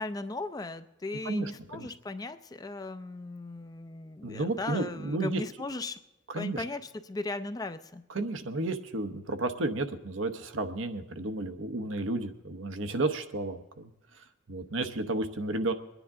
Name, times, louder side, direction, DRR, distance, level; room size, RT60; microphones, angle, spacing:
voice 1, 0.0-6.0 6.3-8.0, left 2 dB, 20° left, 11 dB, 0.4 m, -37 dB
voice 2, 1.2-1.9 4.2-5.4 6.3-6.6 8.1-13.9 14.5-15.7, right 2 dB, 85° right, 8 dB, 0.9 m, -32 dB
22.5 x 10.0 x 3.7 m, 0.99 s
head